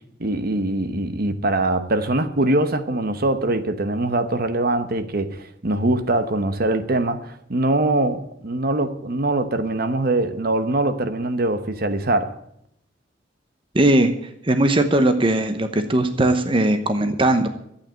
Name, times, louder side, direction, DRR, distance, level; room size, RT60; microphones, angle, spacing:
voice 1, 0.2-12.3, right 2 dB, 55° right, 1.0 m, -22 dB
voice 2, 13.7-14.1 14.4-17.5, right 1 dB, 30° right, 0.9 m, -19 dB
12.0 x 8.6 x 8.8 m
head